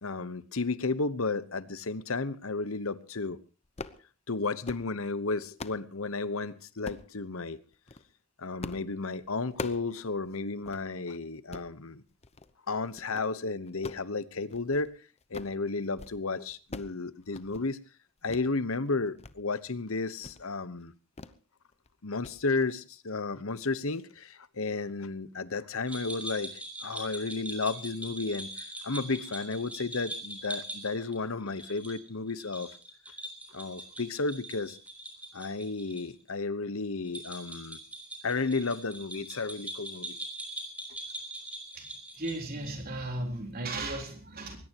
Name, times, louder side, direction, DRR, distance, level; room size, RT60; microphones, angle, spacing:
voice 1, 0.0-3.4 4.3-7.6 8.4-12.0 12.7-14.9 15.3-17.8 18.2-20.9 22.0-26.5 26.8-32.7 33.5-34.8 35.3-37.8 38.2-40.2, left 3 dB, 70° left, 1.1 m, -33 dB
sound 1, 3.6-4.0 4.5-4.9 5.3-5.9 6.8-7.1 7.7-8.0 8.6-8.9 9.2-9.9 10.3-10.4 10.7-10.8 11.3-11.7 12.2-12.5 12.9-13.3 13.7-14.9 15.2-15.6 15.9-16.2 16.4-17.0 17.2-17.7 18.3-18.5 18.9-19.3 19.7-19.8 20.2-20.4 21.2-21.4 21.7-21.9 22.2-22.4, left 3 dB, 30° left, 0.9 m, -43 dB
sound 2, 25.9-36.0 36.3-36.4 37.0-42.8, right 1 dB, 5° right, 5.0 m, -42 dB
voice 2, 41.7-44.6, right 2 dB, 45° right, 3.8 m, -36 dB
21.5 x 20.0 x 3.0 m
head